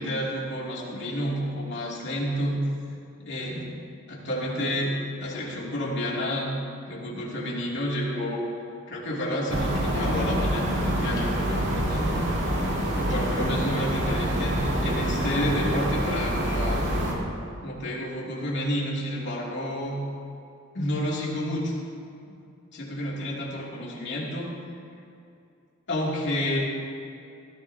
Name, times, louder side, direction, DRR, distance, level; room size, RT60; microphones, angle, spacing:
voice 1, 0.0-2.6 3.2-3.7 4.1-6.6 6.9-8.4 8.9-12.1 12.9-16.8 17.6-20.0 20.7-21.8 22.2-22.3 22.7-24.5 25.9-26.6, equal, 55° left, -4 dB, 2.7 m, -30 dB
sound 1, 9.5-17.1, equal, 55° right, 2.2 m, -26 dB
16.5 x 15.0 x 2.8 m, 2.5 s
head